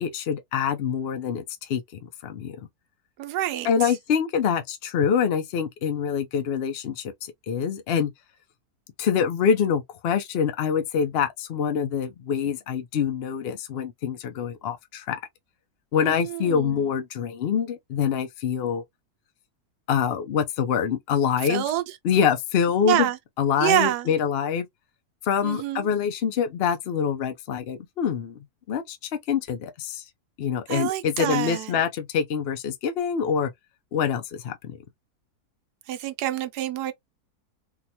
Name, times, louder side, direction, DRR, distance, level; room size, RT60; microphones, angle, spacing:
voice 1, 0.0-2.6 3.6-8.1 9.0-15.2 15.9-18.8 19.9-21.6 22.0-23.1 23.4-24.7 25.2-28.4 28.7-29.0 29.3-30.0 30.4-33.5 33.9-34.8, left 7 dB, 60° left, 0.6 m, -25 dB
voice 2, 3.2-3.9 16.0-16.9 21.5-21.8 22.8-23.2 23.6-24.1 25.4-25.9 30.7-31.8 35.9-36.9, right 13 dB, 85° right, 1.2 m, -27 dB
3.8 x 2.3 x 2.8 m
omnidirectional pair, 1.7 m